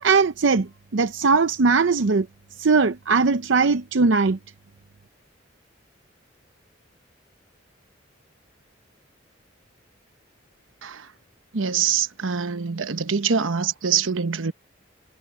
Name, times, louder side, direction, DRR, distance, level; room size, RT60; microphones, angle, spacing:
voice 1, 0.0-2.3 2.6-4.4, right 4 dB, 75° right, 0.6 m, -20 dB
voice 2, 11.5-14.5, right 6 dB, 90° right, 1.0 m, -24 dB
head